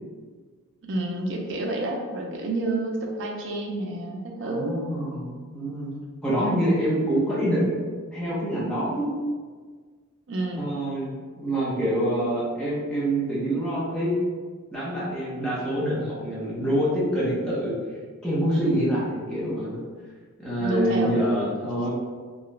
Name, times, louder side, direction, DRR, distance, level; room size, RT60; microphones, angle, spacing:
voice 1, 0.8-4.8 10.3-10.6 20.6-21.1, right 2 dB, 55° right, 1 dB, 0.5 m, -29 dB
voice 2, 4.4-5.9 6.2-9.2 10.6-14.2 14.7-17.7 18.2-19.8 20.4-21.9, equal, 5° left, -8 dB, 0.8 m, -26 dB
2.9 x 2.4 x 3.1 m, 1.5 s
head